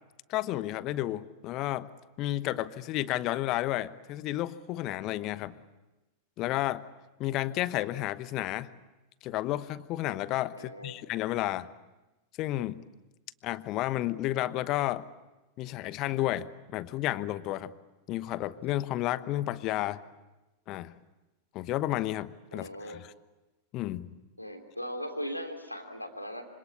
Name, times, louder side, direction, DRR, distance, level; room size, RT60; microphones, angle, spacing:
voice 1, 0.3-1.9 2.2-5.5 6.4-6.8 7.2-8.7 9.2-11.7 12.4-12.8 13.4-15.0 15.6-17.7 18.1-20.0 20.7-20.9 21.5-23.1 23.7-24.1, left 15 dB, 40° left, 16 dB, 1.0 m, -31 dB
voice 2, 10.5-10.9 22.5-23.0 24.4-26.5, equal, 90° left, 5 dB, 3.0 m, -38 dB
26.0 x 25.5 x 8.5 m, 1.1 s
figure-of-eight pair, 90°, 0 cm